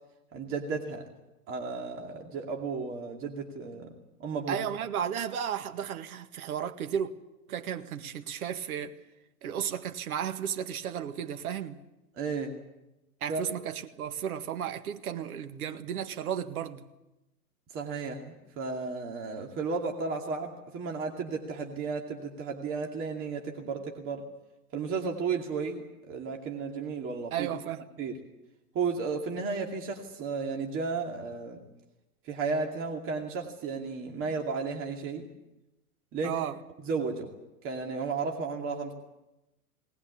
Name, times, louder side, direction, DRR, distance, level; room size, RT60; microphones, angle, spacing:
voice 1, 0.3-1.0 1.5-3.9 4.2-4.7 12.2-12.5 13.3-13.4 17.7-24.2 24.7-27.5 28.0-28.1 28.7-31.6 32.2-35.3 36.1-36.4 36.8-37.3 37.6-38.9, right 4 dB, 30° right, 2.5 m, -33 dB
voice 2, 4.5-7.1 7.5-9.0 9.4-11.8 13.2-16.9 27.3-27.8 36.2-36.6, right 9 dB, 70° right, 1.9 m, -34 dB
20.0 x 20.0 x 8.5 m
hypercardioid pair, 135°, 45 cm